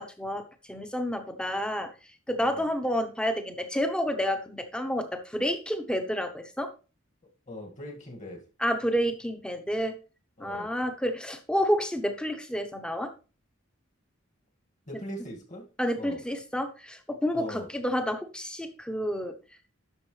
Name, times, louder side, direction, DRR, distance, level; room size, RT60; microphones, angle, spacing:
voice 1, 0.0-1.9 2.3-6.7 8.6-9.9 10.4-13.1 14.9-15.0 15.8-19.3, equal, 5° left, 7 dB, 1.0 m, -29 dB
voice 2, 7.5-8.4 10.4-10.7 14.9-15.6 16.0-16.2 17.3-17.7, left 1 dB, 40° left, 1 dB, 2.2 m, -40 dB
11.0 x 6.7 x 3.3 m, 0.34 s
head